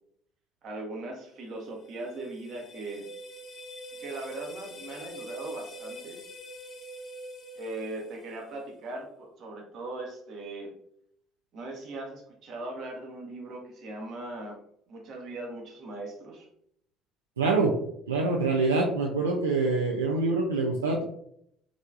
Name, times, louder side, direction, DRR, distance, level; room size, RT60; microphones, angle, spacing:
voice 1, 0.6-3.1 4.0-6.2 7.6-10.8 11.5-14.6 14.9-16.5, right 2 dB, 50° right, 1 dB, 1.0 m, -39 dB
sound 1, 1.6-8.6, right 1 dB, 30° left, 1.0 m, -44 dB
voice 2, 17.4-17.7 18.1-21.0, right 3 dB, 80° right, -1 dB, 0.3 m, -25 dB
3.6 x 3.2 x 2.4 m, 0.71 s
figure-of-eight pair, 55°, 0 cm